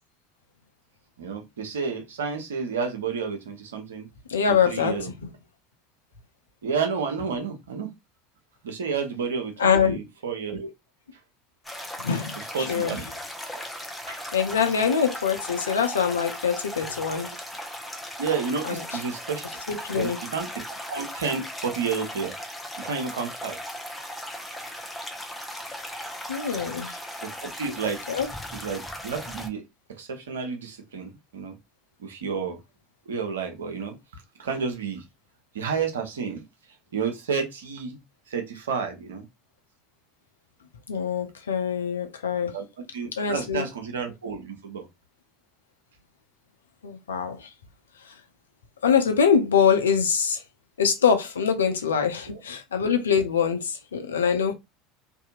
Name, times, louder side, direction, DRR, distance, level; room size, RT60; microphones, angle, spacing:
voice 1, 1.2-4.1 4.5-5.1 6.6-7.9 8.6-10.7 12.5-13.0 14.1-14.2 18.2-19.4 19.9-22.3 22.8-23.6 27.2-28.0 28.5-29.6 30.0-31.5 32.0-32.6 33.1-34.0 34.4-35.1 35.5-36.4 36.9-38.0 38.3-39.3 42.5-42.7 42.9-44.8 52.3-52.4, right 5 dB, 75° right, 0.8 m, -30 dB
voice 2, 4.3-5.3 9.6-10.0 12.0-13.0 14.3-17.3 18.6-19.0 19.7-20.2 26.3-26.9 28.1-28.3 40.9-42.6 43.1-43.7 46.8-47.5 48.8-50.4 50.8-54.5, left 7 dB, 80° left, 0.5 m, -24 dB
sound 1, 11.6-29.5, equal, 5° left, 0.8 m, -37 dB
2.6 x 2.6 x 2.4 m
figure-of-eight pair, 70°, 0 cm